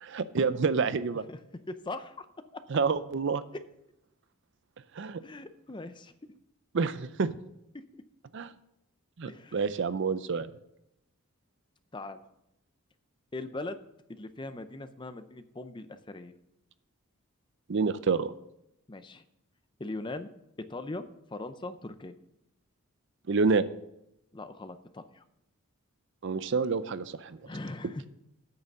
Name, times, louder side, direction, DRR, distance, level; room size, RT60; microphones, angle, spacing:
voice 1, 0.0-1.2 2.7-3.4 5.0-5.2 6.7-7.3 8.3-8.5 9.2-10.5 17.7-18.3 23.3-23.6 26.2-27.4, right 4 dB, 55° right, 14 dB, 0.5 m, -28 dB
voice 2, 1.3-2.3 2.5-2.6 3.5-3.6 5.2-6.1 7.7-7.8 9.3-9.6 11.9-12.2 13.3-13.8 14.1-16.3 18.9-19.2 19.8-20.3 20.7-22.1 24.3-25.2 27.4-28.0, left 2 dB, 20° left, 11 dB, 0.5 m, -40 dB
8.7 x 6.5 x 7.2 m, 0.82 s
head